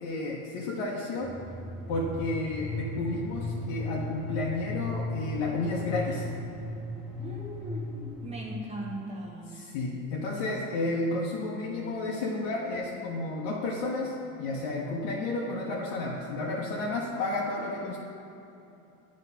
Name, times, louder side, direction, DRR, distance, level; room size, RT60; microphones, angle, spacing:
voice 1, 0.0-1.4 1.9-6.3 9.5-18.0, left 2 dB, 70° left, -3 dB, 0.9 m, -32 dB
sound 1, 1.2-9.0, left 2 dB, ahead, 0.3 m, -36 dB
voice 2, 7.2-9.6, right 1 dB, 15° right, -2 dB, 0.9 m, -39 dB
8.2 x 3.2 x 5.6 m, 2.9 s
supercardioid pair, 130°, 41 cm